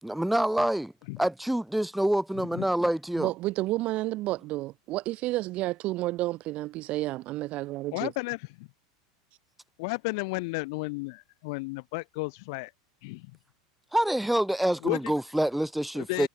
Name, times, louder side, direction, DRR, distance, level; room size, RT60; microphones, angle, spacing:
voice 1, 0.0-3.3 13.9-16.3, right 1 dB, 5° right, 1.1 m, -27 dB
voice 2, 3.2-8.1, right 18 dB, 45° right, 0.4 m, -31 dB
voice 3, 7.9-8.7 9.8-12.7 13.0-13.3 14.8-15.0 16.0-16.3, left 27 dB, 60° left, 1.0 m, -33 dB
hypercardioid pair, 115°, 3 cm